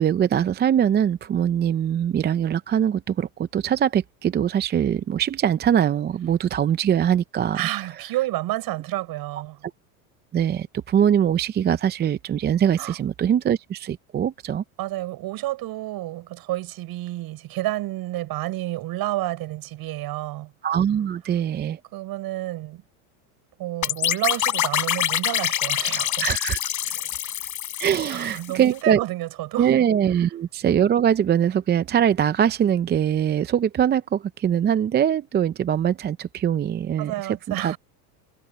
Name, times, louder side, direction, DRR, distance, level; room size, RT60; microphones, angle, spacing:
voice 1, 0.0-7.6 10.3-14.6 20.6-21.8 26.2-26.6 27.8-29.0 29.6-37.7, right 9 dB, 20° right, 0.6 m, -22 dB
voice 2, 7.5-9.6 12.8-13.3 14.8-20.5 21.9-22.8 23.6-26.3 26.9-27.1 27.9-29.8 37.0-37.8, right 16 dB, 50° right, 6.8 m, -30 dB
sound 1, 23.8-28.6, left 12 dB, 40° left, 7.7 m, -26 dB
supercardioid pair, 115°, 46 cm